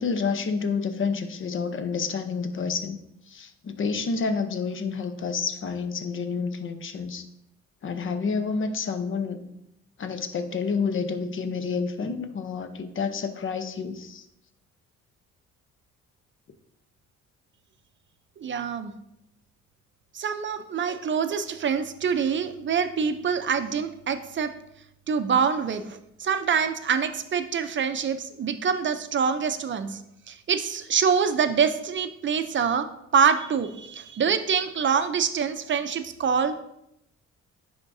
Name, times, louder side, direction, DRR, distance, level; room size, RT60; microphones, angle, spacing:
voice 1, 0.0-3.0 3.3-7.2 7.8-9.4 10.0-14.3, left 5 dB, 40° left, 9 dB, 0.7 m, -29 dB
voice 2, 18.4-18.9 20.1-24.5 25.1-30.0 30.3-32.9 33.1-36.5, right 6 dB, 40° right, 10 dB, 0.6 m, -25 dB
10.0 x 3.7 x 2.6 m, 0.79 s
cardioid pair, 90°, 30 cm